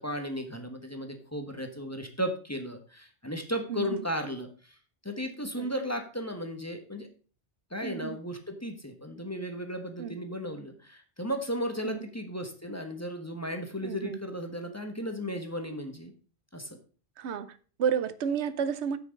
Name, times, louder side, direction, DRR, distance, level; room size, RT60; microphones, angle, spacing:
voice 1, 0.0-4.8 5.0-7.1 7.7-16.1 16.5-16.8, equal, 15° left, 1.2 m, -35 dB
voice 2, 3.7-4.1 5.5-5.7 7.8-8.2 10.0-10.1 11.8-12.1 13.8-14.2 17.2-19.0, right 7 dB, 80° right, 1.0 m, -31 dB
8.8 x 6.3 x 5.2 m
omnidirectional pair, 1.1 m